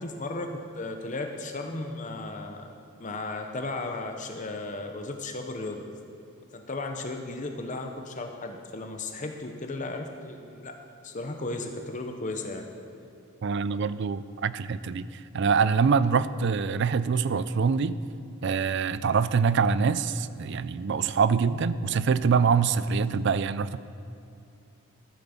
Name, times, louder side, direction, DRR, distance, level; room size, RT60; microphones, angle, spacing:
voice 1, 0.0-2.7 3.0-5.9 6.5-10.8 11.0-12.7, left 2 dB, 35° left, 4 dB, 0.8 m, -35 dB
voice 2, 13.4-18.0 18.4-23.8, right 5 dB, 55° right, 16 dB, 0.4 m, -25 dB
13.5 x 7.8 x 7.1 m, 2.6 s
head